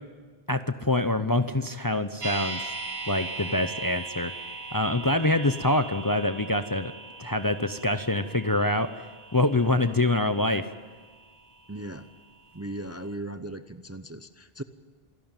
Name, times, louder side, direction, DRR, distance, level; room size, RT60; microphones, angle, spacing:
voice 1, 0.5-2.7 3.1-4.3 4.7-6.9 7.2-8.9 9.3-10.7, left 2 dB, 25° left, 10 dB, 0.6 m, -25 dB
sound 1, 2.2-12.2 12.5-12.6, right 3 dB, 75° right, 2.1 m, -40 dB
voice 2, 11.7-12.1 12.5-14.6, right 1 dB, 20° right, 11 dB, 0.6 m, -37 dB
27.0 x 11.5 x 8.9 m, 1.5 s
omnidirectional pair, 1.0 m